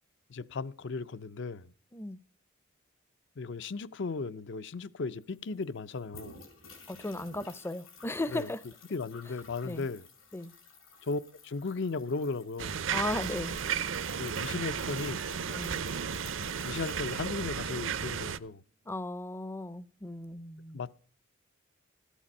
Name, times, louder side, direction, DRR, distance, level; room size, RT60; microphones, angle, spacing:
voice 1, 0.3-1.7 3.4-6.4 8.3-8.5 8.9-10.0 11.0-12.8 14.1-15.3 16.6-18.6 20.7-21.0, left 4 dB, 60° left, 0.6 m, -36 dB
sound 1, 4.9-5.0 5.2-17.9, left 3 dB, 90° left, 5.5 m, -52 dB
voice 2, 6.9-8.6 9.6-9.9 10.3-10.5 12.9-13.6 15.5-15.8 18.9-20.8, left 2 dB, 10° left, 0.5 m, -36 dB
sound 2, 12.6-18.4, right 7 dB, 70° right, 0.6 m, -34 dB
14.5 x 10.0 x 5.4 m
head